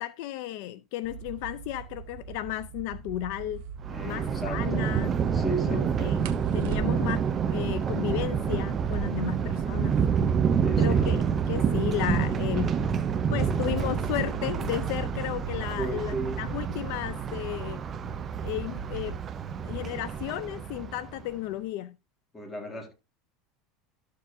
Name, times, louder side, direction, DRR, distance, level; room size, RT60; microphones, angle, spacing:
voice 1, 0.0-3.6 4.0-5.1 5.6-10.0 10.8-12.7 13.3-17.8 18.4-19.2 19.6-21.9, left 14 dB, 65° left, 0.4 m, -34 dB
sound 1, 1.0-19.2, right 7 dB, 40° right, 1.6 m, -40 dB
sound 2, 3.5-3.7 6.2-7.3 8.8-10.4 10.7-10.8 11.0-11.6 12.2-14.8 15.8-16.1 16.5-17.0 17.3-18.0, right 6 dB, 65° right, 0.9 m, -43 dB
Thunder, 3.8-21.2, right 7 dB, 25° right, 0.5 m, -28 dB
voice 2, 3.9-4.9 5.3-5.9 10.6-11.1 15.8-16.5 22.3-22.9, right 1 dB, 15° left, 1.8 m, -35 dB
12.5 x 6.7 x 2.6 m
supercardioid pair, 155°, 0 cm